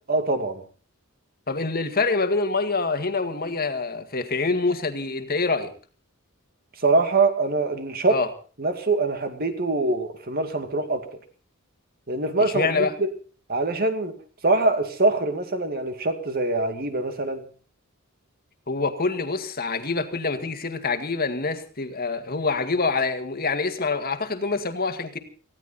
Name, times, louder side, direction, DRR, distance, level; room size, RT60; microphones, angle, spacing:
voice 1, 0.1-0.6 6.8-8.2 8.6-11.0 12.1-13.1 13.5-14.1 14.4-17.4, right 3 dB, 45° right, 7 dB, 2.4 m, -23 dB
voice 2, 1.5-5.7 8.1-8.3 12.4-12.9 18.7-25.2, left 3 dB, 45° left, 7 dB, 2.0 m, -26 dB
19.0 x 16.0 x 4.2 m, 0.38 s
head